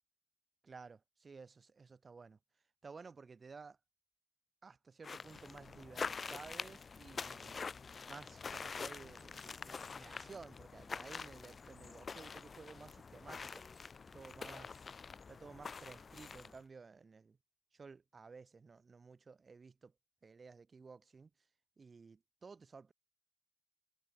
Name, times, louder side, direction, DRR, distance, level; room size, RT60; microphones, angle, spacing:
voice 1, 0.6-2.4 2.8-3.8 4.6-7.6 8.1-13.6 14.1-14.8 15.3-17.4 17.7-19.9 20.2-21.3 21.8-22.9, right 4 dB, 70° right, 1.0 m, -54 dB
sound 1, 5.0-16.6, left 5 dB, 85° left, 0.5 m, -46 dB
Laughter, 10.6-10.7 11.1-11.5 11.9-16.7, right 3 dB, 45° right, 6.3 m, -84 dB
sound 2, 12.1-16.1, left 3 dB, 50° left, 1.5 m, -74 dB
wide cardioid pair, 100°, 0 cm